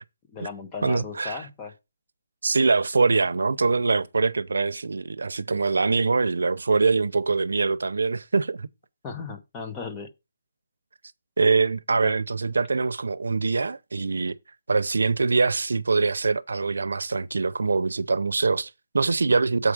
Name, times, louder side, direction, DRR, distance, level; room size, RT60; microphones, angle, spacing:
voice 1, 0.3-1.7 9.0-10.1 12.0-12.1, left 5 dB, 10° left, 0.7 m, -36 dB
voice 2, 0.8-1.5 2.4-8.7 11.4-14.4 14.7-19.7, right 4 dB, 85° right, 0.6 m, -23 dB
7.8 x 4.9 x 4.8 m
hypercardioid pair, 180°, 0 cm